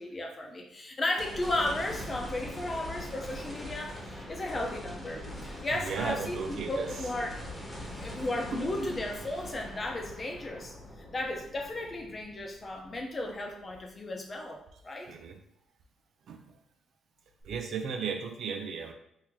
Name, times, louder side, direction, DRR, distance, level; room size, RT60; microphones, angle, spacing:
voice 1, 0.0-7.4 8.0-15.1, left 1 dB, 30° left, 2 dB, 0.8 m, -35 dB
sound 1, 1.2-13.5 14.0-14.1 17.4-17.5, left 1 dB, 10° left, 1.2 m, -42 dB
voice 2, 5.1-7.0 7.9-8.0 8.5-8.9 15.1-15.4 16.3-16.6 17.4-18.9, right 6 dB, 65° right, 5 dB, 0.5 m, -36 dB
3.7 x 2.8 x 3.0 m, 0.77 s
cardioid pair, 90°, 0 cm